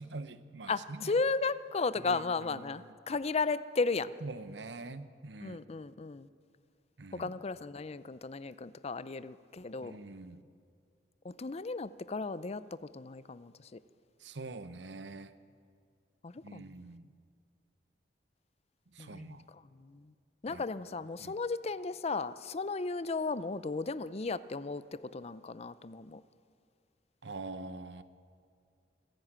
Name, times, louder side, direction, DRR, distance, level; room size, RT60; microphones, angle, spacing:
voice 1, 0.0-1.1 2.0-2.8 4.2-5.6 7.0-7.3 9.8-10.5 14.2-15.3 16.4-17.1 18.9-19.4 20.5-20.6 21.2-21.3 27.2-28.0, right 3 dB, 75° right, 13 dB, 1.0 m, -44 dB
voice 2, 0.7-4.1 5.4-6.3 7.1-10.0 11.2-13.8 16.2-16.8 19.0-20.1 20.4-26.2, left 4 dB, 35° left, 16 dB, 0.5 m, -35 dB
27.0 x 11.0 x 8.9 m, 2.3 s
head